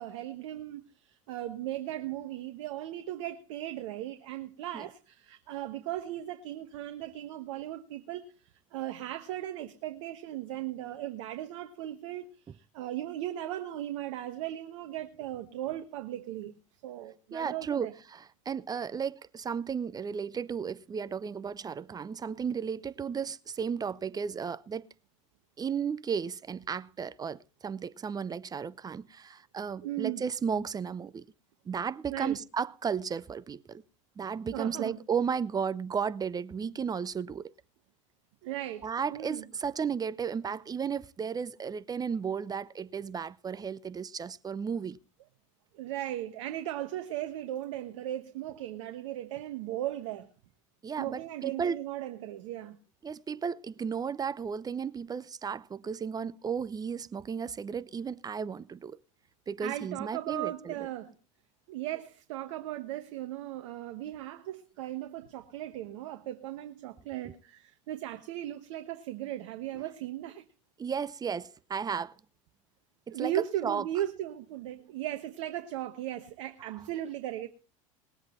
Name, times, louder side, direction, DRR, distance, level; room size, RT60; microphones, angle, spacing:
voice 1, 0.0-8.3 8.7-16.5 16.8-17.9 29.8-30.2 32.1-32.4 34.5-35.0 38.4-39.4 45.7-50.3 51.0-52.8 59.6-61.1 61.7-70.4 73.1-77.5, right 13 dB, 70° right, 1.2 m, -37 dB
voice 2, 17.3-24.9 25.6-31.2 31.7-33.8 34.2-37.5 38.8-45.0 50.8-51.8 53.0-59.0 59.5-60.9 67.2-67.3 70.8-72.2 73.1-73.8 76.6-76.7, right 6 dB, 20° right, 0.6 m, -34 dB
20.5 x 7.9 x 4.4 m
hypercardioid pair, 90°, 17 cm